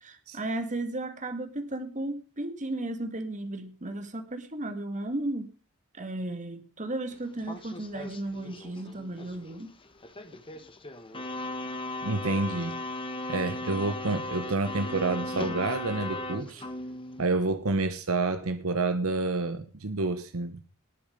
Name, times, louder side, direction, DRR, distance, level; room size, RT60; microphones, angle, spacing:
voice 1, 0.0-5.5 5.9-9.7, right 2 dB, 35° right, 2.0 m, -34 dB
sound 1, 7.1-17.2, left 2 dB, 25° left, 1.4 m, -37 dB
voice 2, 12.0-12.8 13.3-16.7 17.2-20.6, right 3 dB, 75° right, 1.1 m, -29 dB
19.0 x 7.2 x 5.1 m
head